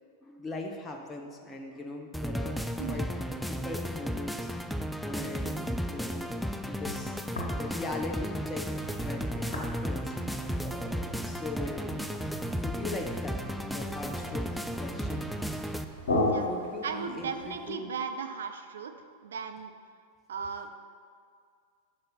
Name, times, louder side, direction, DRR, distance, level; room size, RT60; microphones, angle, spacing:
voice 1, 0.2-2.6 2.9-3.1 3.5-4.5 5.0-6.3 6.7-7.2 7.5-10.1 10.6-12.0 12.5-15.3 16.3-17.9, left 2 dB, 20° left, 2 dB, 0.7 m, -40 dB
sound 1, 2.1-15.8, equal, ahead, 0.3 m, -34 dB
voice 2, 5.2-5.5 16.3-16.5 16.8-19.7 20.3-20.8, right 6 dB, 65° right, 7 dB, 0.5 m, -37 dB
sound 2, 5.6-17.8, left 2 dB, 65° left, 1.3 m, -38 dB
sound 3, 8.8-16.5, right 6 dB, 40° right, 0.8 m, -46 dB
5.4 x 5.4 x 5.9 m, 2.2 s
figure-of-eight pair, 90°, 0 cm